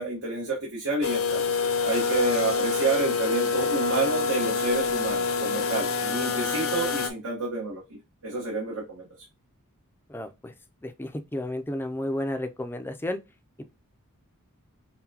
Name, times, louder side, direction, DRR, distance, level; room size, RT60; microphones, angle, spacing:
voice 1, 0.0-1.4 1.8-7.8 8.2-9.1, right 3 dB, 70° right, 1.2 m, -29 dB
sound 1, 1.0-7.1, left 4 dB, 65° left, 0.6 m, -26 dB
voice 2, 10.1-10.5 10.8-13.2, left 1 dB, 10° left, 0.4 m, -32 dB
5.7 x 2.2 x 2.7 m
head